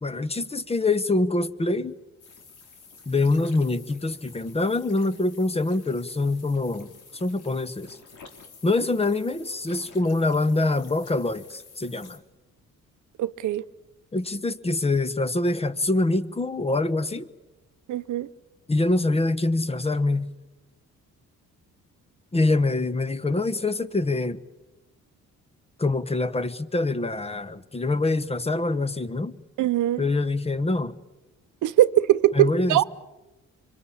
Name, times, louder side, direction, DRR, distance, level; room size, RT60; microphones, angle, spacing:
voice 1, 0.0-2.0 3.1-8.0 8.6-12.2 14.1-17.3 18.7-20.3 22.3-24.4 25.8-29.4 30.0-31.0 32.3-32.8, left 2 dB, 20° left, 1.2 m, -25 dB
sound 1, 2.2-12.2, left 5 dB, 85° left, 3.7 m, -50 dB
voice 2, 13.2-13.6 17.9-18.3 29.6-30.0 31.6-32.8, right 14 dB, 80° right, 0.8 m, -21 dB
25.5 x 24.0 x 8.5 m
cardioid pair, 90°, 30 cm